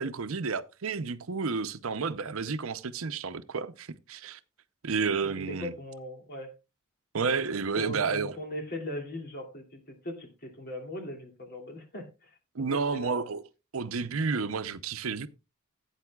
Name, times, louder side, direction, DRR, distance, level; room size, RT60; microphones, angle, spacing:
voice 1, 0.0-4.4 4.8-5.7 7.1-8.4 12.5-13.4 13.7-15.3, right 5 dB, 70° right, 0.7 m, -31 dB
voice 2, 5.2-6.5 7.7-13.4, left 1 dB, 45° left, 2.7 m, -39 dB
16.0 x 8.9 x 2.3 m
head